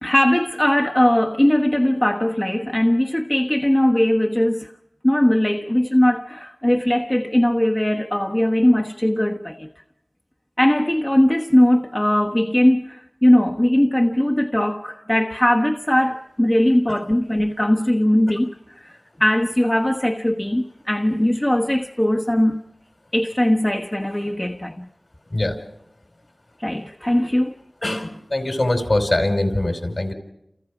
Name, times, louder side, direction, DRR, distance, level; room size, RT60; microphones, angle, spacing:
voice 1, 0.0-4.7 5.0-9.7 10.6-18.5 18.8-22.6 23.1-24.9 26.6-27.5, left 1 dB, 25° left, 1.3 m, -19 dB
voice 2, 27.8-30.1, left 1 dB, 60° left, 4.8 m, -22 dB
30.0 x 29.5 x 5.0 m
wide cardioid pair, 40°, 0 cm